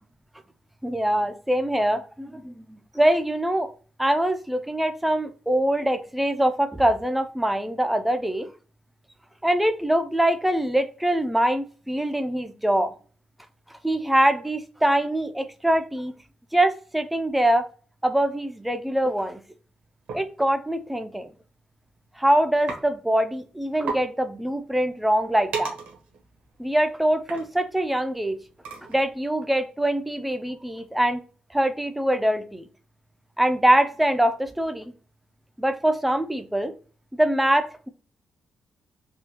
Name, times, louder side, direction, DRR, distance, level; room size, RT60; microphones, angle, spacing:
voice 1, 0.8-3.7 4.0-8.5 9.4-12.9 13.8-16.1 16.5-17.6 18.0-19.4 20.1-21.3 22.2-25.8 26.6-28.4 28.9-31.2 31.5-32.7 33.4-34.9 35.6-36.7 37.1-37.9, right 1 dB, 5° right, 9 dB, 0.4 m, -23 dB
sound 1, 20.1-20.3 21.3-21.5 21.8-22.2 22.7-22.8 23.2-23.3 23.5-23.6 23.8-24.0 24.5-29.2, right 4 dB, 90° right, 1.0 m, -36 dB
3.6 x 2.2 x 2.9 m, 0.37 s
cardioid pair, 110°, 2 cm